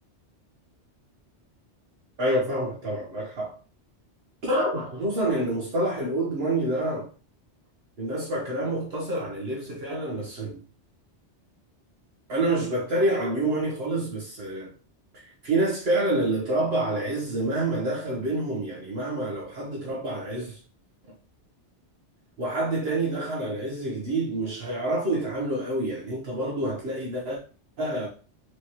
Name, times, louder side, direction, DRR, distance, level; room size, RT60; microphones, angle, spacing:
voice 1, 2.2-3.5 4.4-7.1 8.0-10.6 12.3-14.7 15.2-20.6 22.4-27.4 27.8-28.1, right 1 dB, 65° right, 1.1 m, -27 dB
4.5 x 3.3 x 2.8 m
omnidirectional pair, 1.2 m